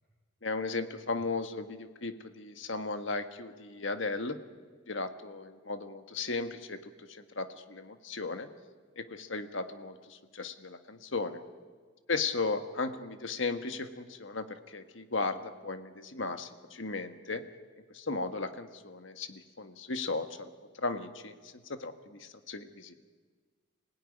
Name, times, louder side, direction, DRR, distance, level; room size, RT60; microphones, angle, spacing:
voice 1, 0.4-4.4 4.9-8.5 9.0-11.4 12.1-17.4 17.9-20.5 20.8-22.9, left 3 dB, 70° left, 9 dB, 1.5 m, -36 dB
26.0 x 17.5 x 9.9 m, 1.5 s
head